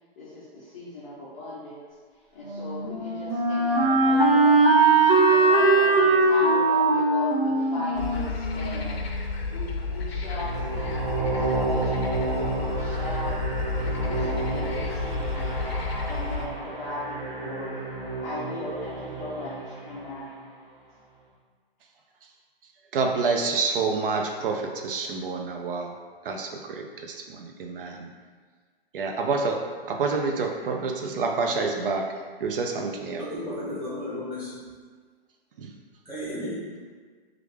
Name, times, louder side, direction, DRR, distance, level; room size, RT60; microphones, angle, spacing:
voice 1, 0.2-1.8 2.3-4.8 5.0-11.0 11.3-13.5 13.7-15.5 16.0-17.9 18.2-20.3, left 1 dB, 20° left, -10 dB, 0.4 m, -38 dB
Wind instrument woodwind instrument, 2.4-9.3, right 3 dB, 80° right, 1.2 m, -21 dB
sound 1, 8.0-16.5, left 4 dB, 90° left, 0.6 m, -31 dB
sound 2, 10.3-20.4, right 3 dB, 50° right, 0.8 m, -31 dB
voice 2, 22.9-26.0 26.2-28.1 28.9-29.6 29.9-32.1 32.4-33.2 35.6-35.7, right 4 dB, 65° right, 2 dB, 0.4 m, -28 dB
voice 3, 33.2-34.6 36.0-36.7, left 1 dB, 5° right, -12 dB, 1.0 m, -34 dB
3.1 x 2.4 x 3.2 m, 1.5 s
hypercardioid pair, 150°, 30 cm